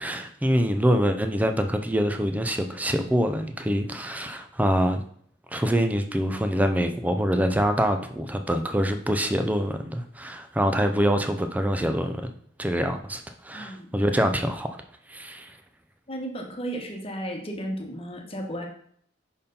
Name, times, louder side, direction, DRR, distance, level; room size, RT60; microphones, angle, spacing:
voice 1, 0.0-5.0 5.5-12.3 12.6-14.7 15.1-15.6, equal, 10° right, 7 dB, 0.6 m, -25 dB
voice 2, 13.5-13.9 16.1-18.7, right 1 dB, 30° left, 2 dB, 1.3 m, -34 dB
5.3 x 4.6 x 5.4 m, 0.62 s
head